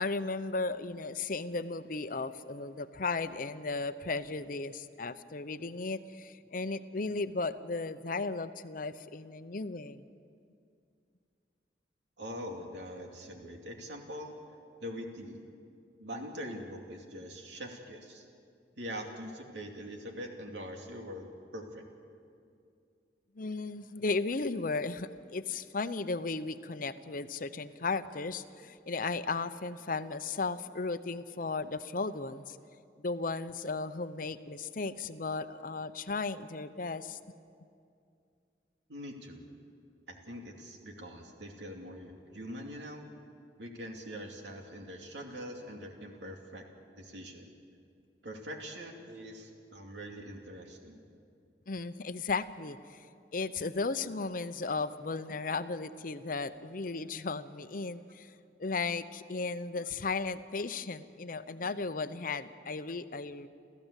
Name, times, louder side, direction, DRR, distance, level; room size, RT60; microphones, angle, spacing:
voice 1, 0.0-10.0 23.4-32.6 33.0-37.2 51.7-53.1 53.3-63.5, left 3 dB, 50° left, 12 dB, 0.8 m, -35 dB
voice 2, 12.2-14.4 14.8-15.4 16.0-18.2 18.8-21.8 38.9-39.4 40.1-43.1 43.6-46.6 46.9-47.5 48.2-51.0, equal, 85° right, 2 dB, 2.6 m, -43 dB
29.0 x 14.5 x 8.2 m, 2.4 s
head